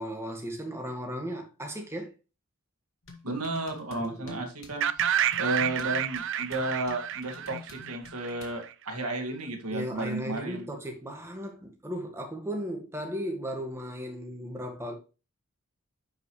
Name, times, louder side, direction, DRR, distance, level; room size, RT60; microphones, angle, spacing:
voice 1, 0.0-2.1 4.0-4.5 9.7-14.9, equal, 10° right, 1.7 m, -36 dB
sound 1, 3.0-8.6, left 4 dB, 60° left, 2.2 m, -49 dB
voice 2, 3.2-5.1 5.4-10.7, right 2 dB, 90° right, 2.2 m, -33 dB
sound 2, 4.8-8.7, right 10 dB, 55° right, 0.6 m, -29 dB
10.5 x 5.3 x 3.2 m
head